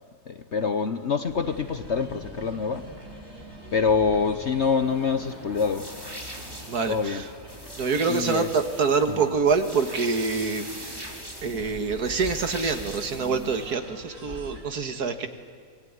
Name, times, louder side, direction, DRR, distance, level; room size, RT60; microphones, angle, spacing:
voice 1, 0.3-2.8 3.7-5.9 6.9-7.2 8.1-8.5 9.1-9.3, left 5 dB, 50° left, 9 dB, 1.2 m, -25 dB
sound 1, 1.2-14.6, equal, 35° right, 7.9 m, -44 dB
sound 2, 5.5-13.7, right 1 dB, 15° right, 3.0 m, -41 dB
voice 2, 6.7-7.3 7.8-11.0 11.4-15.3, right 5 dB, 70° right, 8 dB, 2.1 m, -26 dB
27.0 x 20.5 x 9.6 m, 2.1 s
omnidirectional pair, 1.7 m